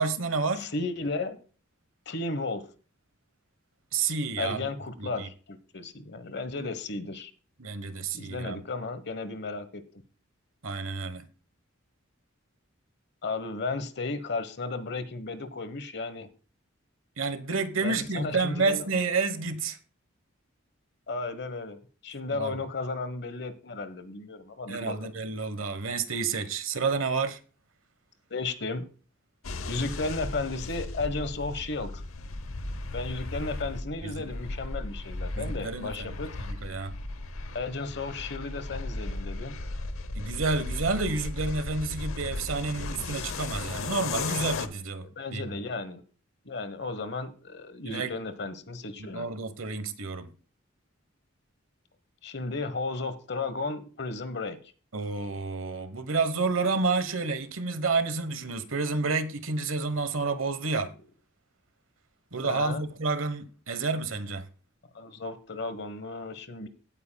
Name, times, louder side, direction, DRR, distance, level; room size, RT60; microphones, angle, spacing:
voice 1, 0.0-0.7 3.9-4.6 5.0-5.3 7.6-8.6 10.6-11.3 17.2-19.8 22.3-22.5 24.7-27.4 34.0-34.3 35.4-36.2 36.5-37.0 40.1-45.4 47.8-48.1 49.0-50.3 54.9-60.9 62.3-64.5, right 4 dB, 75° right, 1.2 m, -30 dB
voice 2, 0.5-1.4 2.1-2.6 4.4-7.3 8.1-9.8 13.2-16.3 17.8-18.9 21.1-25.1 28.3-28.9 29.7-32.0 32.9-36.3 37.5-39.6 45.0-46.0 46.4-49.3 52.2-54.6 62.4-62.8 64.9-66.7, left 3 dB, 55° left, 1.2 m, -34 dB
sound 1, 29.4-44.7, left 2 dB, 85° left, 0.8 m, -36 dB
16.5 x 9.0 x 2.3 m
head